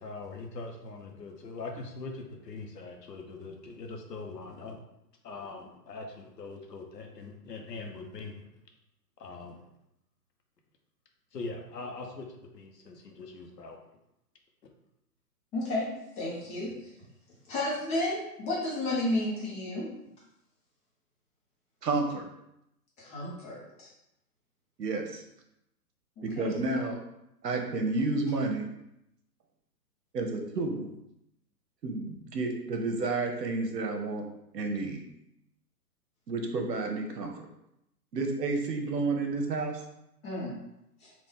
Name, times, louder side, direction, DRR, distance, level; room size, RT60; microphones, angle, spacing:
voice 1, 0.0-4.8 5.2-8.5 9.2-9.7 11.3-13.8, left 3 dB, 80° left, 3 dB, 1.0 m, -42 dB
voice 2, 15.5-15.9 16.2-16.7 17.5-19.9 23.0-23.9 26.2-26.5 40.2-40.6 41.0-41.1, left 1 dB, 15° left, -6 dB, 0.9 m, -32 dB
voice 3, 21.8-22.3 24.8-25.2 26.2-27.0 27.4-28.6 30.1-30.9 31.8-34.3 34.5-35.0 36.3-37.3 38.1-39.8, right 3 dB, 80° right, 3 dB, 1.0 m, -30 dB
4.0 x 2.5 x 3.7 m, 0.83 s
hypercardioid pair, 140°, 48 cm